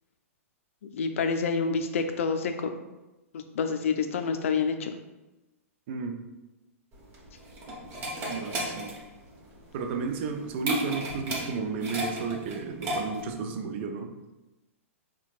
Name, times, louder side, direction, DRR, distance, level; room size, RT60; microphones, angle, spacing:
voice 1, 0.9-2.5 3.5-4.9, left 5 dB, 65° left, 6 dB, 0.5 m, -27 dB
sound 1, 6.9-13.4, equal, 30° right, 1.0 m, -34 dB
voice 2, 8.3-8.9 9.7-14.1, right 5 dB, 50° right, 5 dB, 0.5 m, -33 dB
5.7 x 2.3 x 2.4 m, 1.0 s
hypercardioid pair, 115°, 8 cm